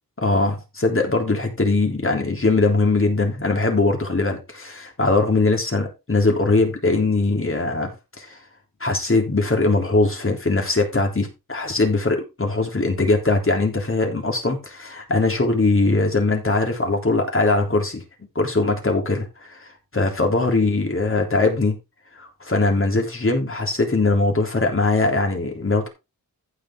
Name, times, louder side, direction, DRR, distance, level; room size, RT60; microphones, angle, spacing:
voice 1, 0.2-7.9 8.2-8.4 8.8-18.0 18.3-21.8 22.2-25.9, left 3 dB, 35° left, 3.5 m, -21 dB
15.0 x 5.7 x 3.7 m
wide cardioid pair, 90°, 36 cm